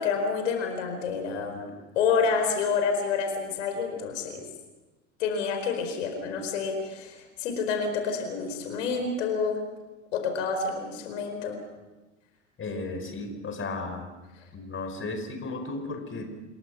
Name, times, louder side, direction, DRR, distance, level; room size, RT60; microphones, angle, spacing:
voice 1, 0.0-4.4 5.2-9.6 10.1-11.6, left 5 dB, 70° left, 5 dB, 4.7 m, -28 dB
voice 2, 12.6-14.1 14.5-16.2, left 3 dB, 30° left, 6 dB, 4.9 m, -34 dB
28.0 x 22.0 x 6.1 m, 1.1 s
figure-of-eight pair, 70°, 39 cm